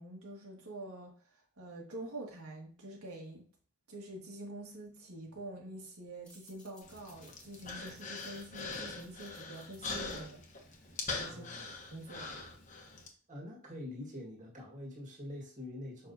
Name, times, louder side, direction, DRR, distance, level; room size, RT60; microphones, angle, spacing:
voice 1, 0.0-3.4 3.9-10.6 11.1-11.5 11.9-12.3, right 1 dB, 80° right, -1 dB, 1.8 m, -46 dB
sound 1, 6.2-11.3, left 1 dB, 5° left, 1.9 m, -63 dB
Human voice, 6.8-13.1, left 3 dB, 35° left, 1.2 m, -42 dB
voice 2, 11.3-11.7 13.3-16.1, left 1 dB, 35° right, -2 dB, 1.9 m, -45 dB
6.6 x 5.5 x 2.8 m, 0.40 s
head